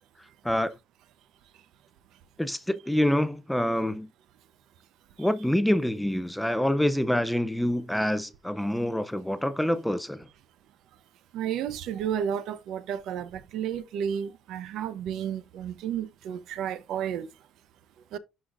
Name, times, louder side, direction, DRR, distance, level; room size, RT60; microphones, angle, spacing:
voice 1, 2.4-4.1 5.2-10.3, left 1 dB, 5° left, 0.5 m, -26 dB
voice 2, 11.3-17.3 18.1-18.2, right 9 dB, 70° right, 0.7 m, -32 dB
11.0 x 4.1 x 2.5 m
cardioid pair, 145°, 0 cm